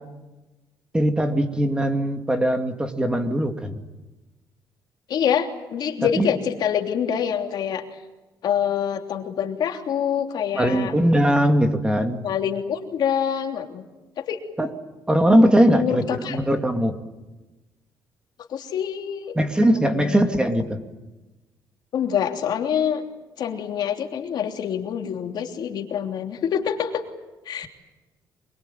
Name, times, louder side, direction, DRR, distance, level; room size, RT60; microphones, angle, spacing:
voice 1, 0.9-3.8 6.2-6.3 10.5-12.2 14.6-14.7 15.1-16.0 16.3-17.0 19.4-20.8, equal, 10° right, 6 dB, 2.5 m, -20 dB
voice 2, 5.1-7.8 8.4-10.9 12.2-13.8 14.2-14.4 15.7-16.4 18.5-19.3 19.8-20.4 21.9-23.0 23.4-27.0 27.4-27.7, left 8 dB, 65° left, 3 dB, 3.2 m, -26 dB
24.5 x 22.5 x 9.3 m, 1.1 s
cardioid pair, 115°, 8 cm